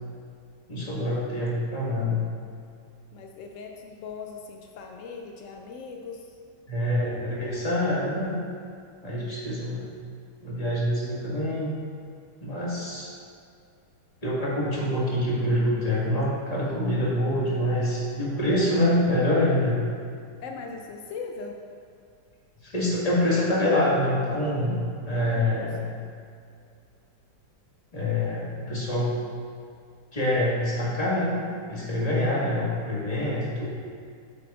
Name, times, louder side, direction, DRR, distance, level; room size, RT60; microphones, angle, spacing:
voice 1, 0.7-2.3 6.7-8.4 9.0-9.9 10.4-11.7 12.4-13.1 14.2-19.8 22.6-24.8 25.0-25.8 27.9-29.1 30.1-31.4 31.7-33.7, left 1 dB, 20° left, -6 dB, 1.5 m, -25 dB
voice 2, 3.1-6.3 9.2-9.7 20.4-21.6 25.1-26.2, left 4 dB, 85° left, 2 dB, 0.6 m, -40 dB
8.3 x 7.7 x 2.4 m, 2.3 s
omnidirectional pair, 1.9 m